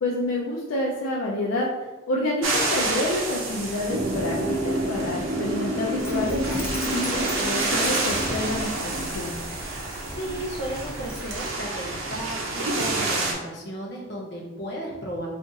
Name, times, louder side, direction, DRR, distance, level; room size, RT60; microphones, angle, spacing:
voice 1, 0.0-1.7 2.1-9.4, left 1 dB, 80° left, -3 dB, 0.4 m, -28 dB
sound 1, 2.4-13.3, right 2 dB, 85° right, 0.6 m, -29 dB
sound 2, 3.9-9.2, equal, 40° right, 0.5 m, -29 dB
Dog, 6.0-11.5, left 1 dB, 10° left, 0.3 m, -37 dB
voice 2, 10.0-15.3, right 1 dB, 55° left, -3 dB, 0.8 m, -34 dB
2.5 x 2.4 x 3.9 m, 1.1 s
head